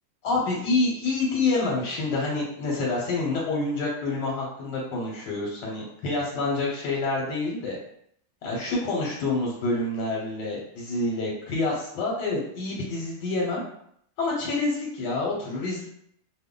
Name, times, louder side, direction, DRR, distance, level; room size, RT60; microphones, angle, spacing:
voice 1, 0.2-7.8 8.4-13.6 14.2-15.8, left 3 dB, 90° left, -3 dB, 1.4 m, -27 dB
3.0 x 2.1 x 3.6 m, 0.70 s
omnidirectional pair, 1.8 m